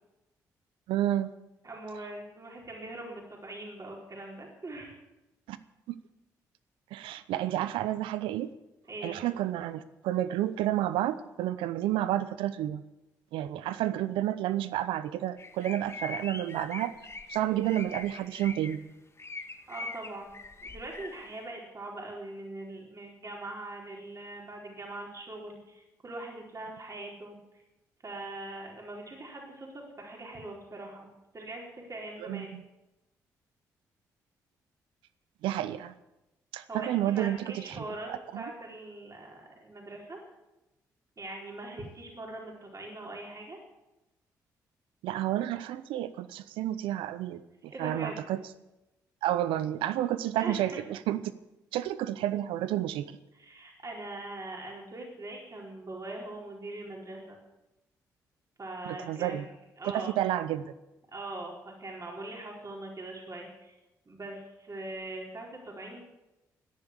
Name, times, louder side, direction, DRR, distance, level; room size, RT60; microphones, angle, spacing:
voice 1, 0.9-1.3 5.5-5.6 5.9-6.0 6.9-8.5 9.0-12.8 13.3-16.9 17.3-18.8 32.2-32.6 35.4-35.9 36.5-37.8 38.1-38.5 45.0-48.4 49.2-51.2 51.7-53.1 58.9-59.5 59.8-60.7, right 13 dB, 75° right, 14 dB, 0.7 m, -30 dB
voice 2, 1.6-4.9 8.9-9.2 19.7-27.6 28.0-32.5 36.7-38.1 38.4-40.2 41.2-43.6 47.7-48.2 50.4-50.8 53.3-57.4 58.6-59.5 59.8-60.1 61.1-63.7 64.1-66.0, right 2 dB, 40° right, -1 dB, 4.6 m, -42 dB
sound 1, 15.4-18.8 19.2-21.2, left 3 dB, 30° left, 1.8 m, -42 dB
13.5 x 10.5 x 8.4 m, 0.97 s
hypercardioid pair, 40°, 9 cm